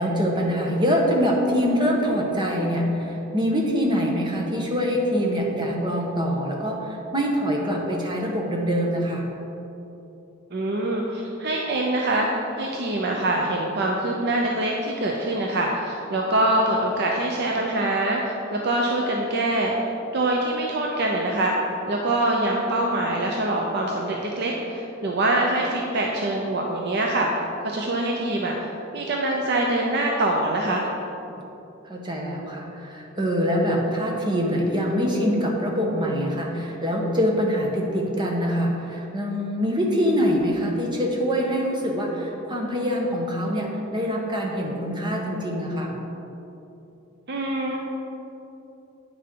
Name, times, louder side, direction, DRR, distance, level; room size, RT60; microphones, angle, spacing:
voice 1, 0.0-9.3 31.3-31.4 31.8-46.0, equal, 25° right, -1 dB, 1.1 m, -24 dB
voice 2, 10.5-12.3 12.6-19.7 20.1-21.5 21.9-28.6 28.9-30.9 47.3-47.8, right 1 dB, 55° right, 0 dB, 0.7 m, -24 dB
8.8 x 6.1 x 4.6 m, 2.9 s
head